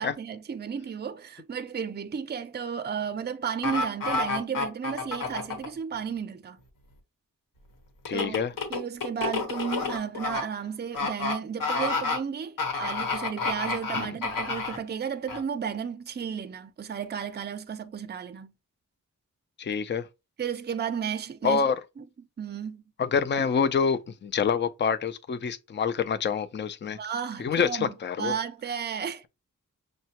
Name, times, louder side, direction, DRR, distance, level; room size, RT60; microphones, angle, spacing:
voice 1, 0.0-6.6 8.1-8.4 8.7-18.5 20.4-21.6 22.0-22.1 22.4-22.8 26.9-29.2, right 7 dB, 30° right, 0.5 m, -33 dB
sound 1, 3.6-5.7 8.1-10.4 10.9-11.3 11.6-12.2 12.6-14.8 15.3-15.4, left 4 dB, 80° left, 1.2 m, -29 dB
voice 2, 8.1-8.5 13.9-14.1 19.6-20.1 21.4-21.8 23.0-27.0 27.4-28.3, left 6 dB, 35° left, 0.4 m, -27 dB
6.4 x 2.2 x 2.8 m
wide cardioid pair, 100°, 32 cm